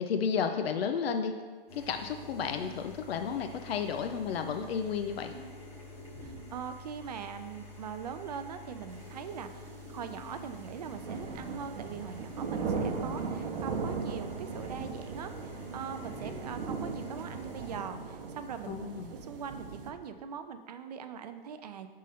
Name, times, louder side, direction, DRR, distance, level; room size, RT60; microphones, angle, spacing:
voice 1, 0.0-1.3 1.7-5.3 18.7-19.1, left 6 dB, 85° left, 7 dB, 0.5 m, -32 dB
sound 1, 1.7-17.8, left 1 dB, 10° left, 0.7 m, -47 dB
voice 2, 6.2-18.8 19.1-21.9, right 7 dB, 45° right, 9 dB, 0.4 m, -42 dB
sound 2, 9.0-19.9, right 5 dB, 70° right, 0.8 m, -38 dB
6.2 x 3.7 x 4.1 m, 1.5 s
hypercardioid pair, 160°, 29 cm